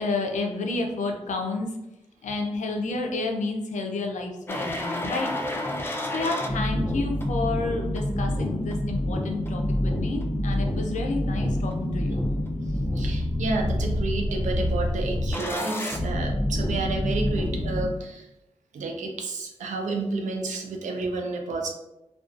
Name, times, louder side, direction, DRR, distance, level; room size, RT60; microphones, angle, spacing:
voice 1, 0.0-1.7 2.2-5.3 6.1-12.2, left 3 dB, 85° left, 3 dB, 0.4 m, -30 dB
sound 1, 4.5-17.9, left 1 dB, 20° left, 0.4 m, -27 dB
voice 2, 13.0-18.3 18.7-21.7, right 3 dB, 90° right, 3 dB, 0.4 m, -30 dB
2.4 x 2.2 x 2.4 m, 0.93 s
cardioid pair, 40°, 12 cm